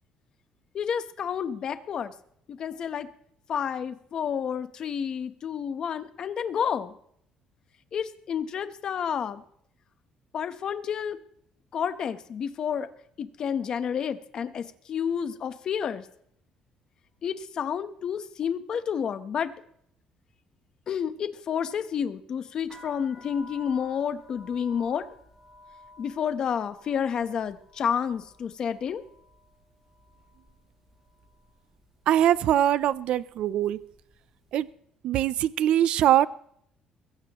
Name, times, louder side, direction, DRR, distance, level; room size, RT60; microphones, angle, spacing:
voice 1, 0.7-2.1 2.5-3.1 3.5-6.9 7.9-9.4 10.3-11.2 11.7-12.9 13.2-16.0 17.2-19.5 20.9-25.1 26.0-29.0, left 7 dB, 40° left, 11 dB, 1.0 m, -30 dB
sound 1, 22.6-30.6 30.8-31.5 32.1-32.4 32.7-34.1, left 2 dB, 15° right, 3.4 m, -52 dB
voice 2, 32.1-33.8 34.5-34.7 35.0-36.3, right 11 dB, 55° right, 17 dB, 0.6 m, -22 dB
21.5 x 16.0 x 3.1 m, 0.68 s
cardioid pair, 175°, 2 cm